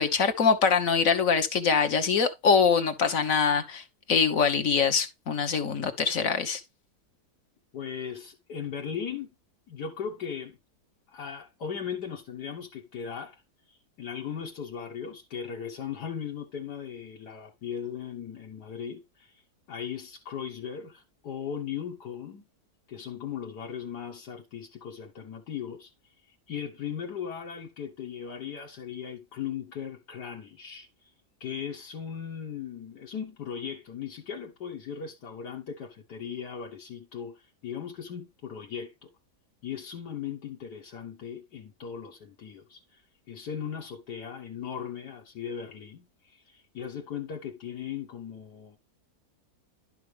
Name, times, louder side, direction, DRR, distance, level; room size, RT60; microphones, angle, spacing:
voice 1, 0.0-6.6, left 6 dB, 55° left, 1.5 m, -24 dB
voice 2, 7.7-9.3 9.7-10.6 11.1-13.4 14.0-19.4 19.7-22.5 22.9-25.9 26.3-30.9 31.4-39.1 39.6-43.0 43.3-48.8, left 7 dB, 80° left, 1.9 m, -38 dB
11.0 x 5.7 x 3.3 m
omnidirectional pair, 1.7 m